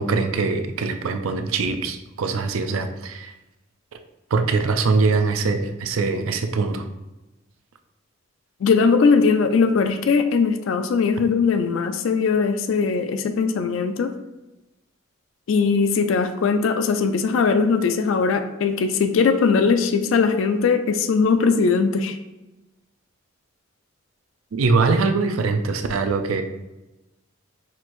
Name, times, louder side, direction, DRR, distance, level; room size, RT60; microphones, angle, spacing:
voice 1, 0.0-3.3 4.3-6.9 24.5-26.4, right 4 dB, 85° right, 8 dB, 0.4 m, -22 dB
voice 2, 8.6-14.1 15.5-22.2, left 5 dB, 75° left, 8 dB, 0.3 m, -20 dB
5.9 x 2.6 x 3.0 m, 1.0 s
head